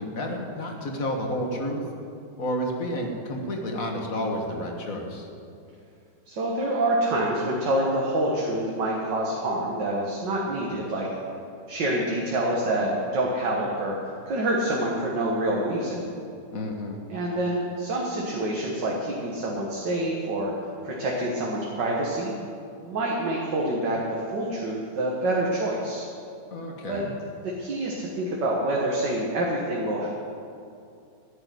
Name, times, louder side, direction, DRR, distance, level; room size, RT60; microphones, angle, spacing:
voice 1, 0.0-1.8 2.4-5.3 16.5-17.0 26.5-27.1, equal, 50° left, 2 dB, 2.0 m, -30 dB
voice 2, 6.3-11.1 11.7-14.0 14.3-16.1 17.1-20.5 20.8-22.3 22.8-26.1 26.9-27.0 27.4-30.1, right 1 dB, 80° right, -3 dB, 2.2 m, -27 dB
14.0 x 6.9 x 9.4 m, 2.5 s
omnidirectional pair, 1.9 m